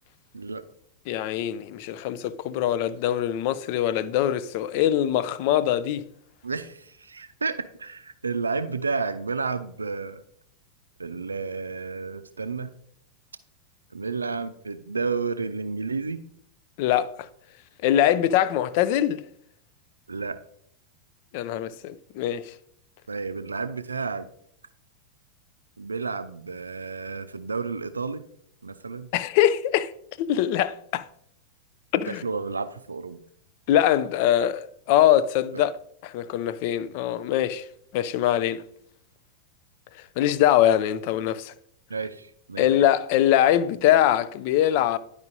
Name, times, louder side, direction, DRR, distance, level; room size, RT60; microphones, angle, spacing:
voice 1, 0.3-0.7 6.4-10.2 11.0-12.7 13.9-16.2 20.1-20.4 23.1-24.3 25.8-28.2 28.6-29.1 32.1-33.2 35.5-35.6 41.9-42.7, right 4 dB, 75° right, 0.4 m, -31 dB
voice 2, 1.1-6.1 16.8-17.1 17.8-19.2 21.3-22.5 29.1-29.9 30.2-31.0 31.9-32.2 33.7-35.7 36.0-37.6 37.9-38.6 40.2-41.5 42.6-45.0, left 11 dB, 45° left, 0.4 m, -23 dB
10.5 x 4.8 x 2.6 m
figure-of-eight pair, 90°, 0 cm